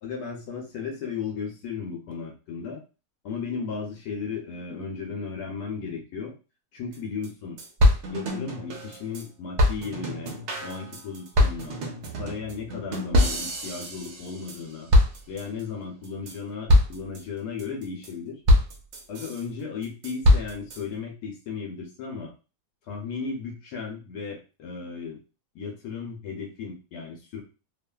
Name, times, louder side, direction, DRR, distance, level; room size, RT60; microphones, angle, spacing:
voice 1, 0.0-2.8 3.2-6.3 6.7-7.6 8.1-11.8 12.2-14.9 15.3-18.4 19.1-22.3 22.9-25.2 25.5-27.4, left 5 dB, 75° left, 1 dB, 1.1 m, -35 dB
sound 1, 6.9-7.0 7.2-7.3 7.6-9.2 9.6-14.6 14.9-15.6 16.0-16.3 16.7-17.2 17.6-18.1 18.5-19.4 19.8-20.8, left 1 dB, 60° right, 0.7 m, -23 dB
2.7 x 2.4 x 2.2 m, 0.32 s
omnidirectional pair, 1.7 m